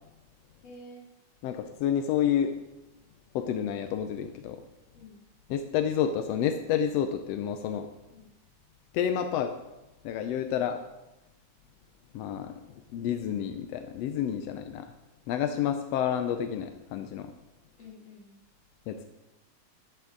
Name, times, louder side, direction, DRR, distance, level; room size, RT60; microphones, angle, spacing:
voice 1, 0.6-1.1 4.9-5.2 8.1-8.3 10.5-10.7 14.4-14.6 17.8-18.4, left 2 dB, 40° left, -4 dB, 4.2 m, -49 dB
voice 2, 1.4-2.5 3.3-4.6 5.5-7.9 8.9-9.5 10.0-10.8 12.1-14.9 15.3-17.3 18.9-19.0, left 9 dB, 75° left, 6 dB, 1.6 m, -29 dB
15.0 x 12.0 x 3.9 m, 0.99 s
omnidirectional pair, 3.4 m